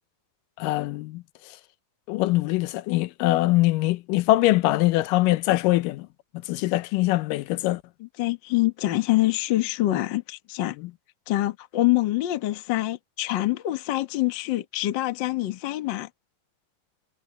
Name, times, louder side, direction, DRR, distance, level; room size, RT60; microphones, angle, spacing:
voice 1, 0.6-1.2 2.1-6.1 6.5-7.8, left 17 dB, 90° left, 2.3 m, -22 dB
voice 2, 8.0-10.8 11.3-16.1, left 16 dB, 60° left, 1.1 m, -25 dB
omnidirectional pair, 3.8 m